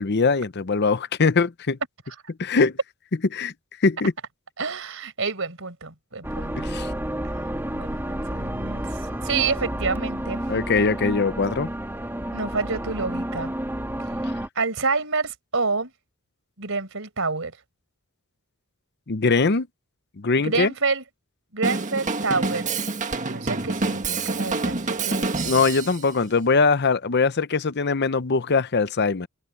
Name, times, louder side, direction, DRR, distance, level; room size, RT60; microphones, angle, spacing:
voice 1, 0.0-1.8 2.4-2.7 3.3-3.5 3.8-4.1 6.6-6.9 10.5-11.7 19.1-19.7 20.2-20.7 25.4-29.3, left 4 dB, 50° left, 0.7 m, -21 dB
voice 2, 4.6-6.7 7.7-8.8 9.2-10.4 12.3-13.5 14.5-15.9 16.6-17.5 20.4-21.0 21.5-22.7 23.3-25.3, right 4 dB, 65° right, 4.8 m, -28 dB
sound 1, 6.2-14.5, right 1 dB, 10° right, 1.8 m, -30 dB
Drum kit / Drum, 21.6-26.0, right 3 dB, 35° right, 1.6 m, -27 dB
head